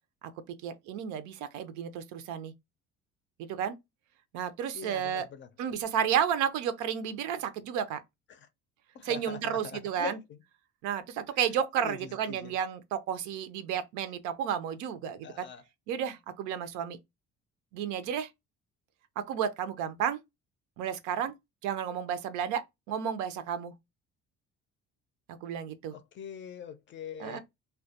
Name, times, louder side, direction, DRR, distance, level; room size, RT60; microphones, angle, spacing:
voice 1, 0.6-2.5 3.4-3.8 4.3-5.2 5.6-8.0 9.0-10.2 10.8-15.5 15.9-17.0 17.7-18.3 19.2-20.2 20.8-21.3 21.6-23.7 25.3-25.9 27.2-27.4, right 8 dB, 85° right, 0.5 m, -32 dB
voice 2, 4.7-5.5 8.3-8.5 8.9-10.4 11.8-12.5 15.2-15.6 25.9-27.4, left 7 dB, 40° left, 0.4 m, -42 dB
2.2 x 2.1 x 2.7 m
cardioid pair, 110°, 29 cm